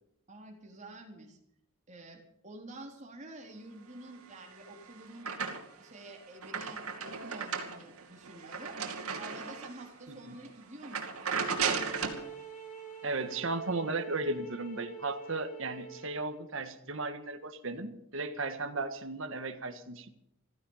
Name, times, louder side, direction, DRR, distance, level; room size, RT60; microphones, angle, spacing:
voice 1, 0.3-1.4 1.9-5.3 5.8-8.8 9.2-11.9, right 2 dB, 35° right, 1 dB, 3.9 m, -49 dB
sound 1, 4.3-5.9 6.2-9.9 10.3-10.5 10.8-12.3, right 5 dB, 85° right, 2.7 m, -35 dB
sound 2, 11.4-16.4, right 6 dB, 35° left, 3.5 m, -46 dB
voice 2, 13.0-20.1, right 3 dB, 60° right, 7 dB, 1.7 m, -35 dB
15.5 x 15.0 x 5.7 m, 0.78 s
head